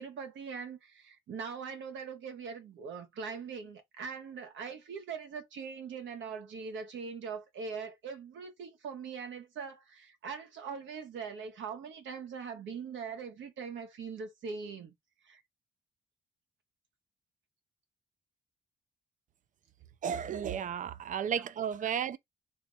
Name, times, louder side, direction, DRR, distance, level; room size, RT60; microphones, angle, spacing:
voice 1, 0.0-14.9 15.2-15.4 21.4-21.5 21.9-22.0, right 5 dB, 75° right, 1.2 m, -41 dB
voice 2, 20.0-22.2, right 8 dB, 40° right, 0.4 m, -33 dB
3.1 x 3.0 x 2.7 m
cardioid pair, 90°, 20 cm